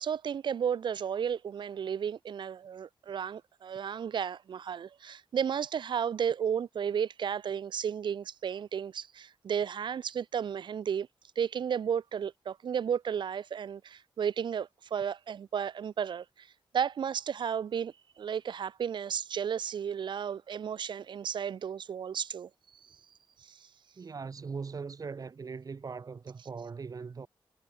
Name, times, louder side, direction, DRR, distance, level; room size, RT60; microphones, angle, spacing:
voice 1, 0.0-11.1 11.4-22.5 22.8-23.0 23.4-23.7, right 8 dB, 60° right, 0.7 m, -33 dB
voice 2, 24.0-27.3, right 5 dB, 45° right, 7.6 m, -40 dB
wide cardioid pair, 125°, 9 cm